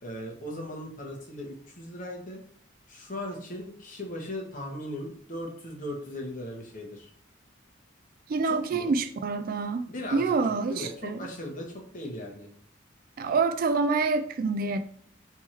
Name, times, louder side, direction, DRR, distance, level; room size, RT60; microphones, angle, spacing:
voice 1, 0.0-2.4 2.9-7.1 8.4-8.9 9.9-10.2 10.7-12.5, left 1 dB, 40° left, 1.1 m, -38 dB
voice 2, 8.3-9.9 10.1-11.2 13.2-14.8, right 4 dB, 45° right, 0.3 m, -26 dB
3.5 x 3.0 x 4.4 m
head